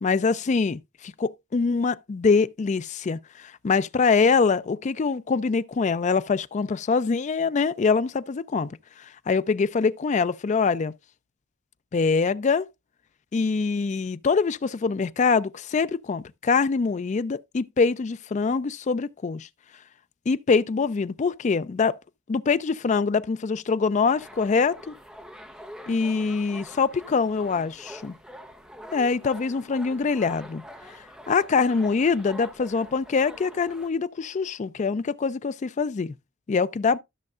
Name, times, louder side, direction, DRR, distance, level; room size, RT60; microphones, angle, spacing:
voice 1, 0.0-10.9 11.9-12.7 13.3-19.5 20.3-22.0 22.3-24.9 25.9-28.1 28.9-30.6 31.3-36.1 36.5-37.0, left 4 dB, 35° left, 0.4 m, -24 dB
sound 1, 24.1-33.9, equal, 5° right, 0.8 m, -45 dB
13.0 x 6.4 x 2.4 m
head